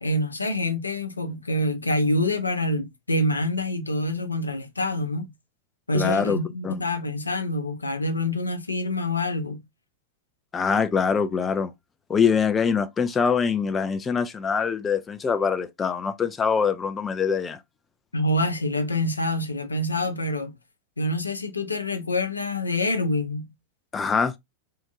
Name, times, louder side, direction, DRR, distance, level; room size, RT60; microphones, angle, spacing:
voice 1, 0.0-5.3 5.9-9.6 18.1-20.5 21.0-23.5, left 1 dB, 80° left, 0.6 m, -26 dB
voice 2, 5.9-6.4 6.6-6.8 10.5-11.7 12.1-17.6 23.9-24.3, left 6 dB, 20° left, 0.4 m, -24 dB
3.7 x 2.5 x 2.6 m
figure-of-eight pair, 90°, 0 cm